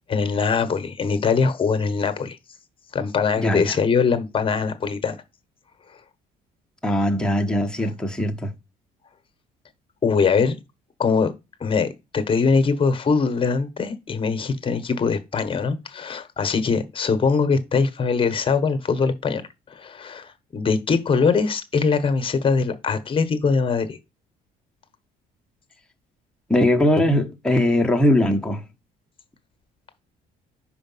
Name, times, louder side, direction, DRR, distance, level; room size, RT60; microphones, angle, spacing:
voice 1, 0.1-2.4 2.9-5.2 10.0-10.5 11.0-11.3 11.6-11.9 12.1-19.4 19.7-24.0, left 5 dB, 30° left, 1.2 m, -22 dB
voice 2, 3.4-3.8 6.8-8.5 26.5-28.6, left 1 dB, 5° left, 1.1 m, -20 dB
5.1 x 4.8 x 5.5 m
cardioid pair, 110°, 17 cm